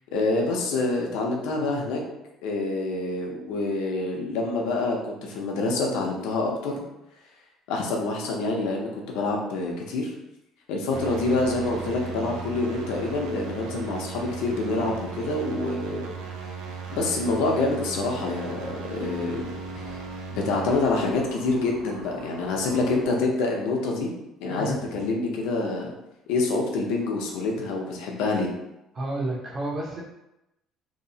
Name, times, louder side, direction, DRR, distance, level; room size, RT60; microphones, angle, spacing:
voice 1, 0.1-2.0 2.4-6.8 7.7-10.1 10.7-16.1 16.9-19.5 19.8-19.9 20.3-24.1 24.4-25.9 26.3-28.5, left 3 dB, 90° left, 0 dB, 0.5 m, -26 dB
sound 1, 10.9-23.1, right 5 dB, 85° right, 0.4 m, -37 dB
voice 2, 24.5-25.0 28.9-30.0, right 1 dB, 30° right, -3 dB, 0.6 m, -31 dB
2.8 x 2.0 x 2.7 m, 0.90 s
cardioid pair, 155°, 0 cm